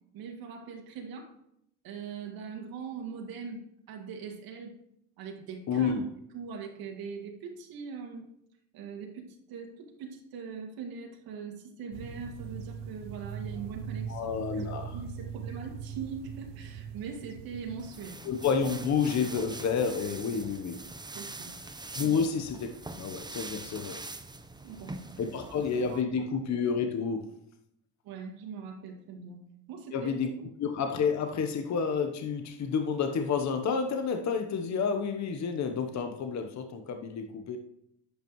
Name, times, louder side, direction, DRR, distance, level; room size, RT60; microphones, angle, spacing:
voice 1, 0.1-1.3 1.8-4.8 5.2-5.9 6.3-8.3 8.7-18.2 21.1-21.5 22.0-22.2 24.6-26.0 28.0-30.1, right 6 dB, 65° right, 1 dB, 2.1 m, -42 dB
voice 2, 5.7-6.1 14.1-15.0 18.2-20.9 21.7-24.0 25.2-27.3 29.9-30.3 30.6-37.6, left 6 dB, 45° left, 6 dB, 1.0 m, -30 dB
sound 1, 11.9-17.9, right 7 dB, 85° right, 0.7 m, -40 dB
sound 2, 17.8-26.0, right 2 dB, 10° right, 0.9 m, -43 dB
10.5 x 8.5 x 3.1 m, 0.75 s
supercardioid pair, 65°, 37 cm